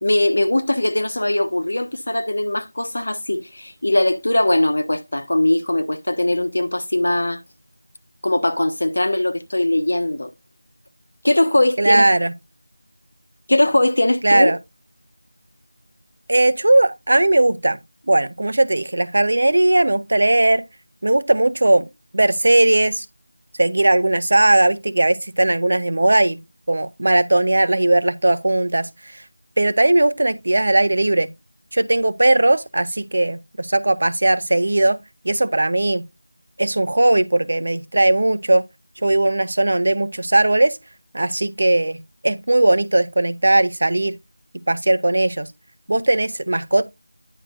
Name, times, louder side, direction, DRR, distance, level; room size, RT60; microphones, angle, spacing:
voice 1, 0.0-7.4 8.2-10.3 11.2-12.0 13.5-14.5, left 1 dB, 65° left, 1.2 m, -20 dB
voice 2, 11.8-12.3 14.2-14.6 16.3-17.8 18.1-20.6 21.0-21.9 22.1-23.1 23.6-26.4 26.7-28.9 29.6-31.3 31.7-35.0 35.2-36.0 36.6-38.7 39.0-40.8 41.1-42.0 42.2-44.2 44.7-45.5 45.9-46.8, right 2 dB, 55° right, 0.7 m, -18 dB
10.0 x 6.4 x 2.5 m
figure-of-eight pair, 180°, 0 cm